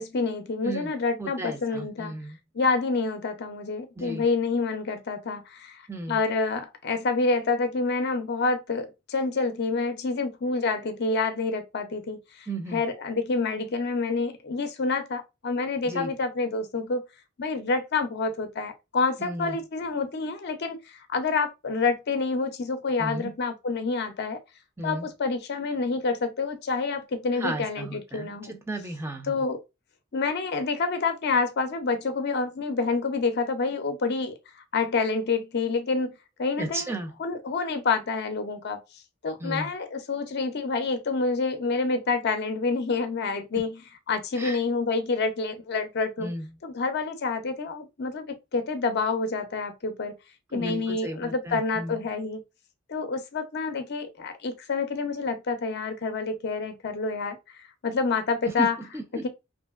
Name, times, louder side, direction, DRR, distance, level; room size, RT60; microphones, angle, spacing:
voice 1, 0.0-2.1 2.5-5.8 6.1-17.0 17.4-24.4 24.8-28.5 29.2-29.6 30.1-34.3 34.7-36.1 36.4-36.9 37.2-38.8 39.2-43.8 44.1-46.3 46.6-50.1 50.5-52.4 52.9-57.4 57.8-58.8 59.2-59.3, left 4 dB, 50° left, 0.5 m, -28 dB
voice 2, 1.2-2.4 4.0-4.3 5.9-6.2 12.5-12.8 15.8-16.1 19.2-19.6 23.0-23.3 24.8-25.1 27.4-29.4 36.6-37.1 39.4-39.7 44.4-44.6 46.2-46.5 50.5-52.0 58.6-59.3, right 1 dB, 10° right, 0.5 m, -34 dB
2.8 x 2.5 x 2.3 m
head